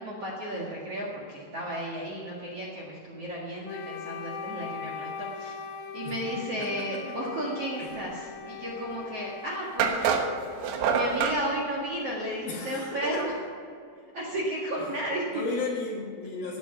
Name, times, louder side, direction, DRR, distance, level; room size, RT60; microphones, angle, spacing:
voice 1, 0.0-5.5 5.9-10.1 10.9-13.3 14.1-15.2, right 1 dB, 50° right, -4 dB, 1.9 m, -33 dB
Wind instrument woodwind instrument, 3.6-11.7, left 6 dB, 85° left, 3.1 m, -41 dB
voice 2, 6.0-7.4 7.8-8.0 12.5-13.2 14.8-14.9 15.3-16.6, left 3 dB, 65° left, 0 dB, 2.8 m, -35 dB
sound 1, 9.0-9.1 9.8-11.4, right 6 dB, 85° right, 3.8 m, -26 dB
15.0 x 10.0 x 5.7 m, 2.3 s
omnidirectional pair, 5.4 m